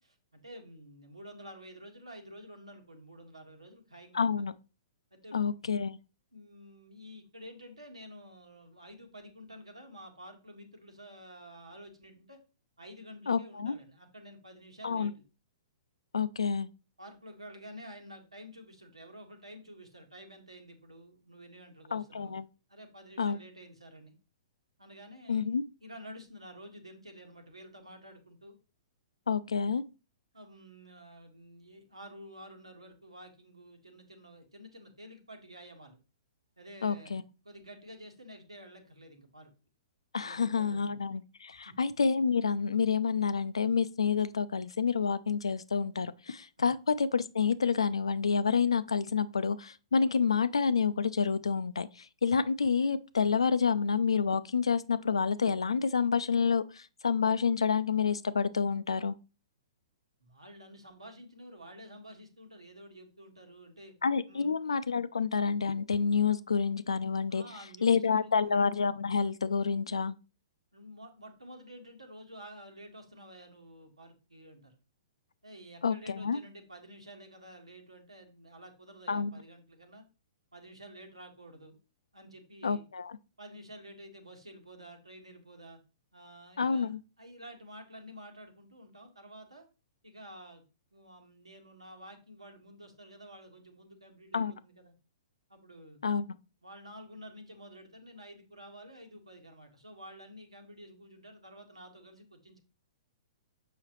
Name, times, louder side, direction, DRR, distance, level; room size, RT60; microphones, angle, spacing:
voice 1, 0.3-4.3 5.1-5.7 6.3-12.4 12.8-15.2 17.0-22.4 22.7-24.1 24.8-25.5 25.8-28.6 30.3-36.0 36.6-39.5 40.2-41.1 41.5-41.7 46.6-46.7 60.2-63.9 64.3-64.5 67.3-68.4 70.7-74.8 75.4-80.0 80.5-81.7 82.1-82.8 83.4-85.8 86.1-86.9 87.2-89.7 90.0-90.6 90.9-94.9 95.5-96.0 96.6-102.6, equal, 85° right, 1.6 m, -50 dB
voice 2, 4.1-4.5 5.3-6.0 13.3-13.8 14.8-15.1 16.1-16.7 21.9-22.5 23.2-23.4 25.3-25.6 29.3-29.8 36.8-37.2 40.1-59.1 64.0-67.4 67.8-70.1 75.8-76.4 79.1-79.3 82.6-83.2 86.6-87.0 94.3-94.5 96.0-96.3, left 6 dB, 75° left, 0.5 m, -28 dB
7.0 x 5.5 x 3.0 m
figure-of-eight pair, 115°, 3 cm